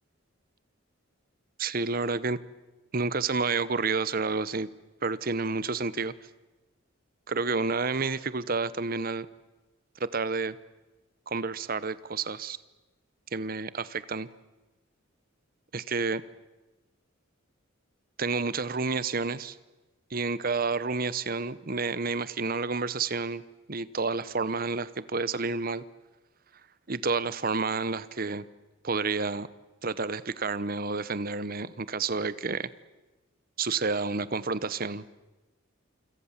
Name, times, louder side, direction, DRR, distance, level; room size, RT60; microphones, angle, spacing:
voice 1, 1.6-2.4 2.9-4.7 5.0-6.1 7.3-9.3 10.0-10.6 11.3-12.6 13.3-14.3 15.7-16.2 18.2-19.6 20.1-23.4 23.7-25.8 26.9-28.4 28.8-29.5 29.8-32.7 33.6-35.0, right 4 dB, 45° right, 16 dB, 0.9 m, -30 dB
28.0 x 26.0 x 7.4 m, 1.1 s
head